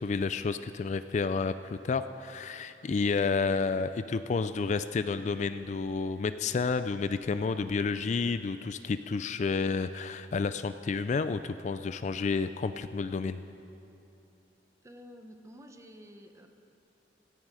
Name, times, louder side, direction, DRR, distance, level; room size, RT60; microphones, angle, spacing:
voice 1, 0.0-13.4, left 4 dB, 40° left, 11 dB, 0.3 m, -30 dB
voice 2, 14.8-16.5, equal, 15° right, 5 dB, 0.9 m, -50 dB
16.5 x 14.5 x 4.9 m, 2.9 s
head